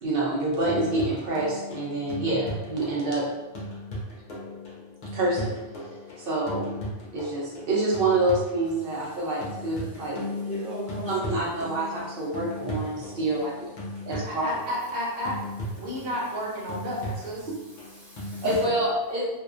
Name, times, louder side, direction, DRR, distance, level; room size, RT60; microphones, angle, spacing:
voice 1, 0.0-3.3 5.1-5.5 6.2-6.8 7.1-10.2 11.1-13.7 14.1-14.4 18.4-19.3, right 2 dB, 65° right, -4 dB, 0.8 m, -27 dB
sound 1, 0.7-18.8, left 1 dB, 55° left, 0.6 m, -37 dB
voice 2, 10.2-11.4 12.6-13.3 17.9-18.6, equal, ahead, -10 dB, 0.7 m, -38 dB
voice 3, 14.1-15.4 15.7-17.5, equal, 90° right, -4 dB, 1.0 m, -32 dB
2.3 x 2.2 x 2.4 m, 1.1 s
omnidirectional pair, 1.1 m